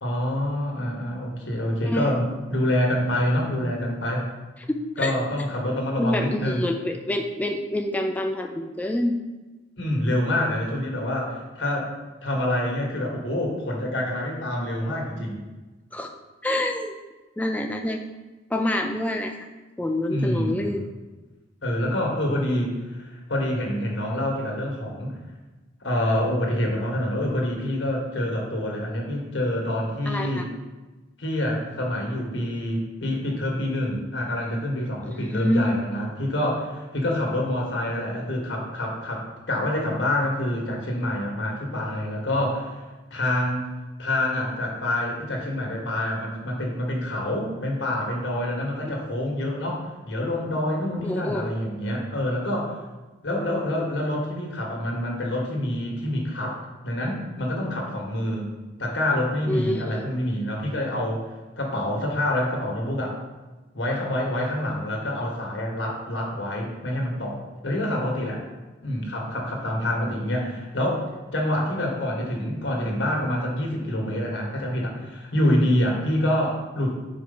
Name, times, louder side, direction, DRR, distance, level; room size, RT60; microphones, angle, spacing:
voice 1, 0.0-4.3 5.0-6.6 9.8-11.9 12.2-15.4 20.1-20.8 21.6-25.2 25.8-30.5 31.2-42.8 43.1-43.7 44.0-52.8 53.2-58.5 58.8-61.3 61.6-63.2 63.7-68.4 68.8-76.9, left 1 dB, 80° left, -1 dB, 1.7 m, -26 dB
voice 2, 1.8-2.2 4.7-5.1 6.0-9.2 15.9-16.1 16.4-16.9 17.4-18.0 18.5-19.4 19.8-20.9 30.1-30.4 35.1-35.7 51.0-51.5 59.5-60.0, left 1 dB, 10° left, 3 dB, 0.4 m, -27 dB
5.0 x 4.6 x 5.4 m, 1.2 s
head